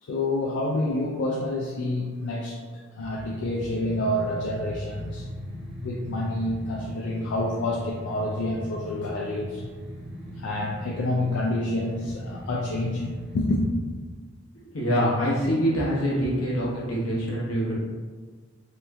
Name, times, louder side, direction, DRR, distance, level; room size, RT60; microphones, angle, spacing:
voice 1, 0.0-5.3 5.8-9.6 10.3-13.7, left 1 dB, 60° left, -2 dB, 0.3 m, -28 dB
sound 1, 3.0-13.4, equal, ahead, 0.5 m, -38 dB
voice 2, 14.7-17.9, equal, 80° left, -6 dB, 1.0 m, -25 dB
3.0 x 2.1 x 3.4 m, 1.5 s
head